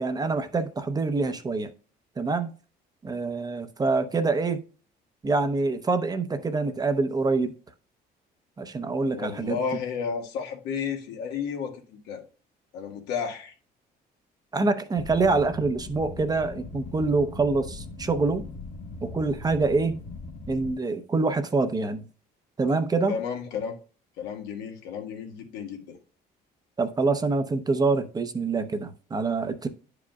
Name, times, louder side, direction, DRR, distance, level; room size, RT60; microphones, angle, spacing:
voice 1, 0.0-1.7 2.2-2.5 3.0-4.6 5.2-7.5 8.6-9.6 14.5-18.4 19.0-20.0 20.5-22.0 22.6-23.2 26.8-29.7, right 3 dB, 25° right, 0.7 m, -25 dB
voice 2, 9.1-12.2 12.7-13.5 23.1-23.8 24.2-26.0, left 6 dB, 90° left, 1.5 m, -32 dB
sound 1, 15.0-20.7, left 3 dB, 45° left, 1.2 m, -40 dB
10.5 x 4.9 x 2.3 m
cardioid pair, 110°, 17 cm